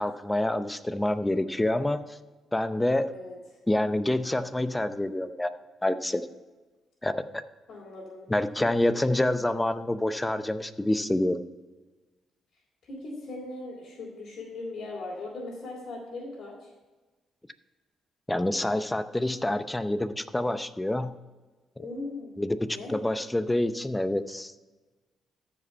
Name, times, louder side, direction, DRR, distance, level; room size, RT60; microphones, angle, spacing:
voice 1, 0.0-2.2 2.5-3.1 3.7-5.5 5.8-6.3 7.0-7.4 8.3-11.4 18.3-21.1 22.4-22.6 22.9-24.6, left 1 dB, 10° left, 11 dB, 0.7 m, -27 dB
voice 2, 7.7-8.3 12.8-16.7 21.8-22.3 22.7-23.0, left 2 dB, 55° left, -6 dB, 3.1 m, -39 dB
14.0 x 5.1 x 5.5 m, 1.2 s
cardioid pair, 90°, 0 cm